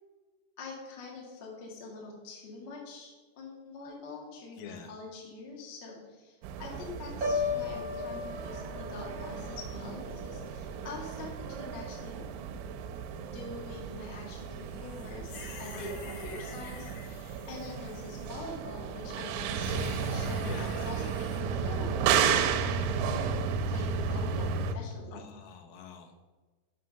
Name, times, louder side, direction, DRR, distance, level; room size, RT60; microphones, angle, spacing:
voice 1, 0.6-11.3 11.6-12.2 13.3-23.4 23.7-25.2, left 3 dB, 70° left, -2 dB, 1.0 m, -44 dB
voice 2, 4.6-4.9 15.7-15.9 20.4-20.7 25.1-26.2, left 7 dB, 90° left, 4 dB, 3.6 m, -46 dB
sound 1, 6.4-24.7, right 6 dB, 90° right, 3.3 m, -33 dB
Piano, 7.2-11.2 11.5-11.9, left 4 dB, 70° right, 1.1 m, -36 dB
sound 2, 14.7-18.4 19.6-21.4, left 5 dB, 55° left, 3.0 m, -49 dB
8.2 x 5.8 x 6.5 m, 1.3 s
omnidirectional pair, 5.7 m